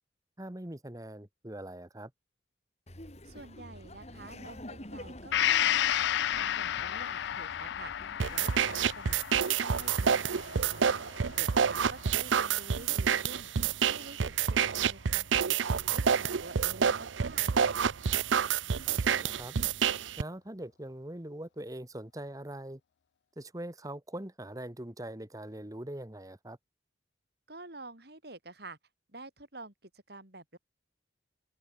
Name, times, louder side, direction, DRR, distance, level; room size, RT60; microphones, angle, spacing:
voice 1, 0.4-2.1 18.9-19.5 20.2-22.8 23.4-26.6, right 1 dB, 20° right, 1.3 m, -42 dB
Laughter, 2.9-8.7, left 1 dB, 35° left, 4.0 m, -48 dB
voice 2, 3.2-5.8 6.3-7.9 8.3-10.9 11.4-13.5 13.9-17.5 27.5-28.8 29.1-30.6, right 2 dB, 55° right, 4.6 m, -49 dB
Gong, 5.3-13.0 13.3-13.4, left 11 dB, 65° left, 0.3 m, -33 dB
sound 1, 8.2-20.2, right 7 dB, 80° right, 0.6 m, -28 dB
open air
head